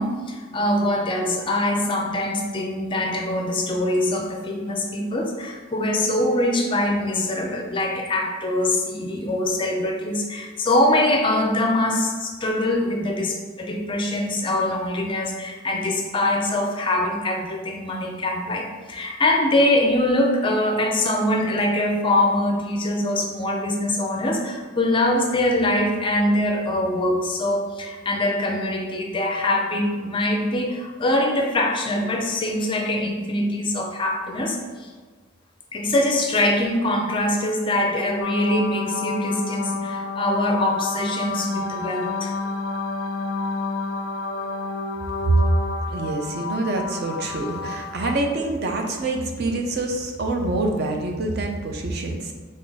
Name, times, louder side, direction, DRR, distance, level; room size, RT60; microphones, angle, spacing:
voice 1, 0.0-34.9 35.7-42.3, left 1 dB, 25° left, 2 dB, 0.4 m, -23 dB
sound 1, 38.2-48.2, left 3 dB, 85° left, 0.4 m, -30 dB
voice 2, 45.9-52.3, right 2 dB, 50° right, 2 dB, 0.5 m, -25 dB
3.7 x 3.5 x 4.0 m, 1.4 s
head